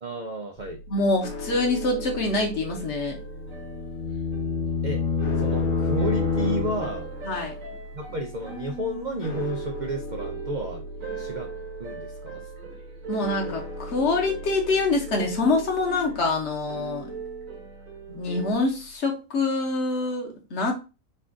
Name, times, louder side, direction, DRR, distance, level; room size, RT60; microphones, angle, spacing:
voice 1, 0.0-0.8 4.8-5.0 5.4-7.1 7.9-10.8 11.2-11.5 11.8-12.4, right 1 dB, 85° right, 3 dB, 0.4 m, -31 dB
sound 1, 0.6-19.0, left 1 dB, 80° left, 1.3 m, -40 dB
voice 2, 0.9-3.2 7.3-7.6 13.1-17.1 18.1-20.7, left 3 dB, 55° left, 1 dB, 1.3 m, -25 dB
sound 2, 1.0-18.5, right 5 dB, 70° right, 1.5 m, -41 dB
sound 3, 3.3-7.3, left 4 dB, 35° left, 1.1 m, -27 dB
4.3 x 2.5 x 3.6 m, 0.30 s
omnidirectional pair, 1.5 m